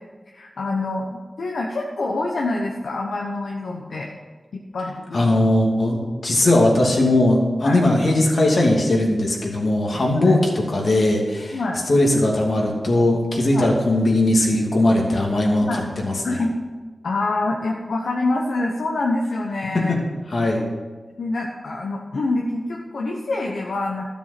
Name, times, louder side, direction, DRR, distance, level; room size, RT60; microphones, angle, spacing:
voice 1, 0.3-4.1 4.5-5.3 7.6-7.8 10.1-10.3 11.5-11.8 13.5-13.7 15.6-15.8 16.2-16.6 17.0-19.9 21.2-24.1, left 2 dB, 90° left, -1 dB, 1.0 m, -26 dB
voice 2, 5.1-16.4 19.7-20.0 20.3-20.6, left 1 dB, 70° left, -1 dB, 2.7 m, -19 dB
13.0 x 7.0 x 6.0 m, 1.3 s
cardioid pair, 50°, 0 cm